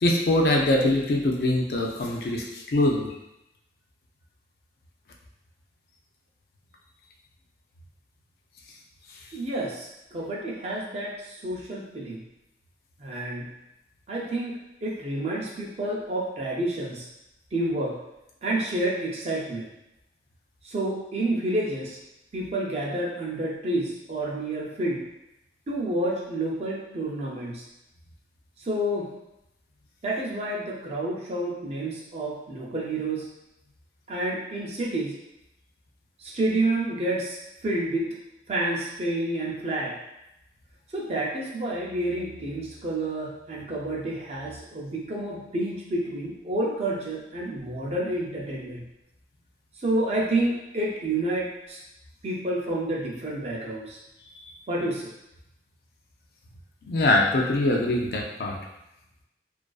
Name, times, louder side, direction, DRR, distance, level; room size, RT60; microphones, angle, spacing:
voice 1, 0.0-3.1 54.4-54.5 56.9-58.6, left 1 dB, 60° left, 0 dB, 0.3 m, -23 dB
voice 2, 9.3-12.2 13.0-13.5 14.1-17.1 17.5-18.0 18.4-19.7 20.6-22.0 22.3-25.1 25.7-27.6 28.6-29.1 30.0-33.3 34.1-35.1 36.2-37.4 37.6-38.1 38.5-39.9 40.9-48.9 49.8-51.8 52.2-54.0 54.7-55.1, right 1 dB, 35° right, -3 dB, 0.4 m, -29 dB
2.4 x 2.3 x 2.3 m, 0.89 s
head